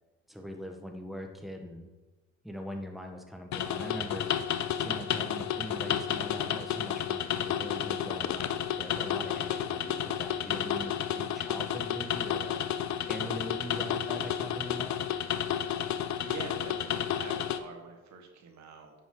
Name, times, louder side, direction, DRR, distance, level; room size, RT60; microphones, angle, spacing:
voice 1, 0.3-1.9 2.4-4.3 4.8-12.6 13.1-15.0, equal, ahead, 3 dB, 1.3 m, -41 dB
sound 1, 3.5-17.6, left 10 dB, 65° left, 0.7 m, -31 dB
voice 2, 16.2-18.9, right 5 dB, 70° right, 3 dB, 1.6 m, -45 dB
9.6 x 6.0 x 3.8 m, 1.2 s
cardioid pair, 90°, 30 cm